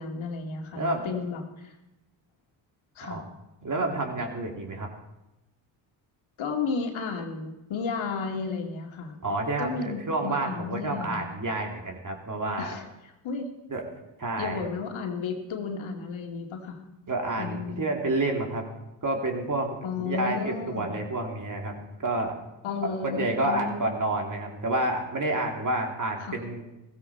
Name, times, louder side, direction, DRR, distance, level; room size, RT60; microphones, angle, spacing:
voice 1, 0.0-1.7 3.0-3.2 6.4-9.2 9.6-11.3 12.6-12.8 13.2-13.5 14.4-16.8 17.4-17.9 19.8-21.0 22.6-23.8 26.2-26.4, left 5 dB, 65° left, 3 dB, 2.2 m, -33 dB
voice 2, 0.7-1.1 3.0-3.2 3.6-4.9 9.2-12.7 13.7-13.8 14.2-14.6 17.1-18.7 19.0-19.8 20.0-21.7 22.0-22.3 23.0-26.6, right 2 dB, 40° right, 1 dB, 3.2 m, -29 dB
15.5 x 15.0 x 4.4 m, 0.97 s
supercardioid pair, 55°, 50 cm